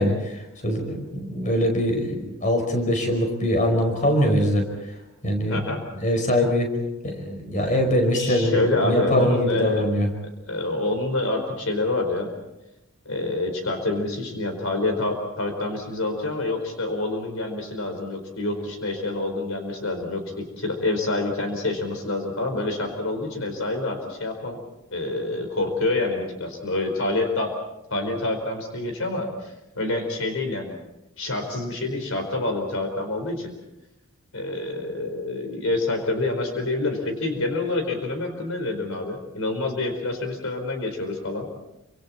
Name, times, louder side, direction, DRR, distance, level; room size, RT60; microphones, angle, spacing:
voice 1, 0.0-4.7 5.2-5.6 6.0-6.7 7.0-10.1, equal, 35° left, 3 dB, 5.3 m, -23 dB
voice 2, 8.1-9.8 10.5-12.3 13.0-24.6 24.9-27.5 27.9-30.7 31.2-33.5 34.3-41.5, left 2 dB, 70° left, 4 dB, 4.7 m, -27 dB
29.0 x 26.5 x 4.4 m, 0.93 s
head